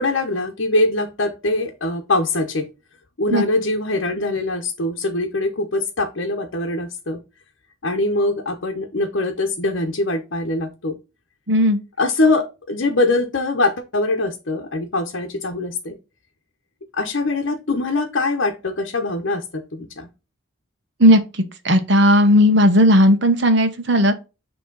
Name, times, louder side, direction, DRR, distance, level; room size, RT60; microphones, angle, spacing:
voice 1, 0.0-2.6 3.2-7.2 7.8-10.9 12.0-16.0 16.9-20.1, left 2 dB, 65° left, 0.9 m, -22 dB
voice 2, 11.5-11.8 21.0-24.2, equal, 55° right, 1.1 m, -15 dB
9.2 x 3.1 x 3.9 m
head